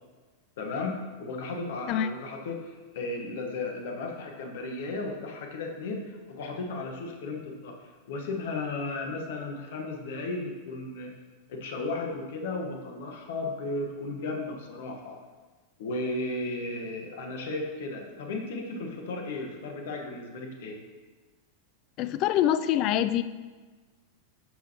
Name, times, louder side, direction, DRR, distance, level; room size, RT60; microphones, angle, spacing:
voice 1, 0.6-7.8 8.1-11.1 11.5-15.2 15.8-20.8, left 2 dB, 55° left, 2 dB, 1.2 m, -35 dB
voice 2, 22.0-23.2, left 11 dB, 40° left, 13 dB, 0.4 m, -25 dB
10.0 x 6.2 x 2.9 m, 1.3 s
figure-of-eight pair, 90°, 0 cm